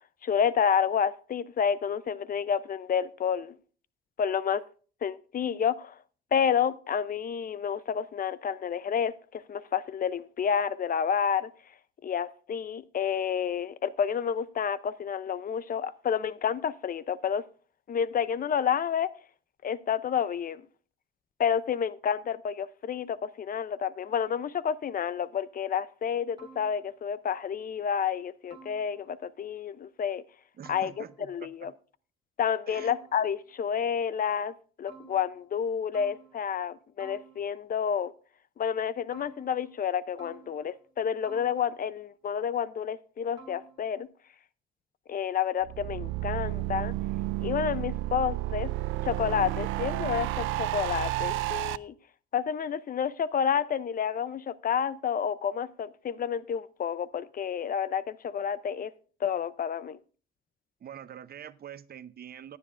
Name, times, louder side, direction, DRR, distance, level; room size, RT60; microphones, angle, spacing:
voice 1, 0.2-3.6 4.2-4.6 5.0-6.0 6.3-11.5 12.0-17.4 17.9-19.1 19.6-20.7 21.4-30.2 30.7-31.7 32.4-38.1 38.6-44.1 45.1-46.9 47.4-48.7 49.0-51.9 52.3-58.9 59.2-60.0, left 7 dB, 45° left, 0.6 m, -29 dB
sound 1, 26.4-27.2 28.5-29.3 30.6-31.4 32.7-33.5 34.9-35.7 35.9-36.7 37.0-37.8 39.1-39.9 40.2-41.0 41.2-42.0 43.4-44.0, right 4 dB, 20° right, 3.2 m, -53 dB
voice 2, 30.6-31.7 32.7-32.9 60.8-62.6, right 9 dB, 50° right, 0.7 m, -45 dB
sound 2, 45.6-51.8, right 16 dB, 90° right, 0.4 m, -31 dB
16.5 x 9.9 x 2.5 m
cardioid pair, 90°, 20 cm